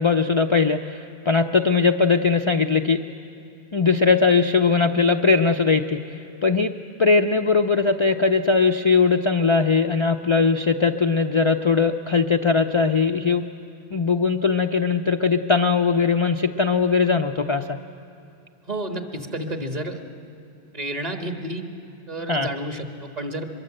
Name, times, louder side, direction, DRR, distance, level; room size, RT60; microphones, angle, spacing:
voice 1, 0.0-3.0 3.7-6.7 7.0-13.4 13.9-17.8 22.3-22.5, left 4 dB, 35° left, 5 dB, 0.5 m, -20 dB
voice 2, 18.7-20.0 20.7-21.7 22.1-23.5, right 1 dB, 40° right, 4 dB, 1.7 m, -30 dB
23.5 x 22.5 x 7.8 m, 2.8 s
omnidirectional pair, 1.1 m